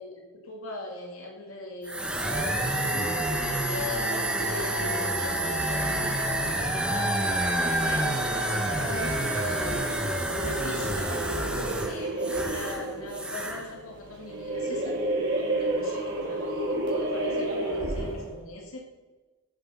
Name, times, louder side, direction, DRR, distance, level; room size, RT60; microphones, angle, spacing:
voice 1, 0.0-3.1 3.6-10.1 10.4-15.0 15.6-18.9, left 1 dB, 75° left, 0 dB, 2.3 m, -41 dB
sound 1, 1.8-12.8 13.1-13.6, right 1 dB, 5° right, 1.3 m, -28 dB
sound 2, 2.6-9.9, left 3 dB, 55° left, 4.3 m, -50 dB
sound 3, 2.7-18.4, right 1 dB, 60° right, 3.5 m, -33 dB
14.0 x 8.0 x 5.6 m, 1.2 s
head